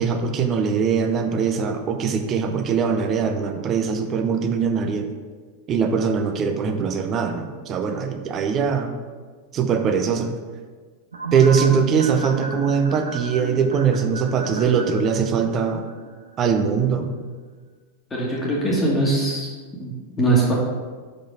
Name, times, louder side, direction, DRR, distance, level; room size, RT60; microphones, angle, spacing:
voice 1, 0.0-5.1 5.7-8.9 9.5-10.3 11.3-15.8 16.4-17.1, right 6 dB, 30° right, 6 dB, 0.7 m, -21 dB
sound 1, 11.1-16.5 16.8-16.9, right 4 dB, 75° right, 0.8 m, -33 dB
voice 2, 18.1-19.5 19.8-19.9 20.2-20.5, right 2 dB, 20° left, -5 dB, 1.6 m, -21 dB
5.9 x 5.1 x 5.3 m, 1.5 s
figure-of-eight pair, 90°, 0 cm